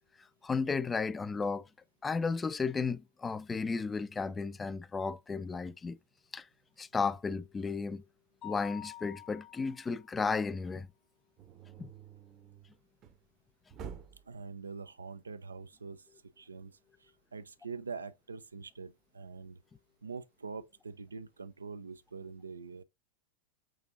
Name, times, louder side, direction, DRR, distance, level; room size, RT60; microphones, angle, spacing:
voice 1, 0.4-1.7 2.0-6.0 6.3-6.5 6.8-8.0 8.4-10.9 11.8-11.9, left 4 dB, 15° left, 0.4 m, -34 dB
Mallet percussion, 8.4-10.2, left 14 dB, 35° left, 0.8 m, -47 dB
sound 1, 11.4-13.3 13.7-14.3, right 7 dB, 30° right, 0.8 m, -48 dB
voice 2, 14.3-16.1 16.4-19.6 20.0-22.8, right 4 dB, 75° right, 0.4 m, -44 dB
6.1 x 2.5 x 2.4 m
figure-of-eight pair, 90°, 0 cm